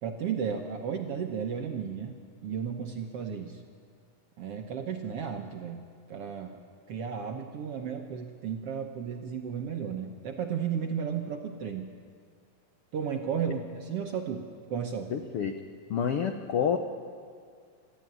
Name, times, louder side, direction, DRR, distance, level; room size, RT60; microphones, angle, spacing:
voice 1, 0.0-2.2 2.4-3.6 4.4-6.6 6.9-11.9 12.9-15.1, right 7 dB, 65° right, 3 dB, 1.5 m, -34 dB
voice 2, 15.1-15.5 15.9-16.8, left 8 dB, 85° left, 6 dB, 1.2 m, -28 dB
26.5 x 13.0 x 9.3 m, 2.2 s
omnidirectional pair, 3.9 m